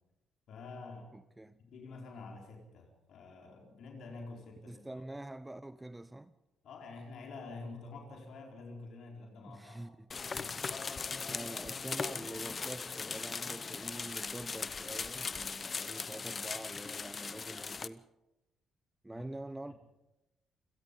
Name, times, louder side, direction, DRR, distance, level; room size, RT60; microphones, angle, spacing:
voice 1, 0.5-1.1 1.6-5.0 6.6-9.9 10.2-10.7 19.1-19.3 19.7-19.8, left 3 dB, 70° left, 4.4 m, -48 dB
voice 2, 1.1-1.6 4.7-6.3 9.4-10.1 11.2-18.0 19.0-19.7, right 1 dB, 10° right, 0.7 m, -46 dB
sound 1, 10.1-17.9, left 5 dB, 35° left, 0.9 m, -39 dB
28.0 x 17.5 x 5.4 m
cardioid pair, 90°, 0 cm